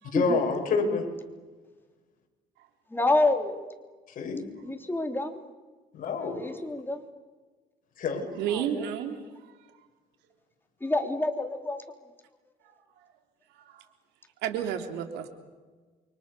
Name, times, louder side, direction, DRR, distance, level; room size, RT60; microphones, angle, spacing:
voice 1, 0.1-1.0 4.1-4.4 5.9-6.4 8.0-8.2, left 4 dB, 55° left, 2 dB, 6.5 m, -27 dB
voice 2, 2.9-3.6 4.6-5.4 6.2-7.0 8.5-8.8 10.8-11.8, left 2 dB, 10° left, 5 dB, 3.4 m, -27 dB
voice 3, 8.4-9.5 12.6-12.8 13.5-13.8 14.4-15.3, right 9 dB, 90° right, 6 dB, 3.6 m, -32 dB
29.0 x 24.0 x 6.9 m, 1.3 s
cardioid pair, 110°, 17 cm